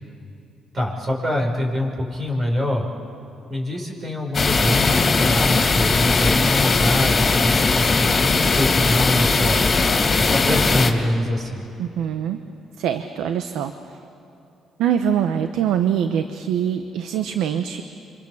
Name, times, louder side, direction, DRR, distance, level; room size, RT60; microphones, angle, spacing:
voice 1, 0.7-2.8 3.5-9.6 10.2-11.6, left 1 dB, 40° right, 0 dB, 5.9 m, -24 dB
sound 1, 4.3-10.9, left 4 dB, 40° left, 2.9 m, -19 dB
voice 2, 11.8-12.4 12.8-13.7 14.8-17.8, right 9 dB, 90° right, 8 dB, 0.9 m, -23 dB
28.0 x 25.0 x 7.2 m, 2.9 s
cardioid pair, 90°, 0 cm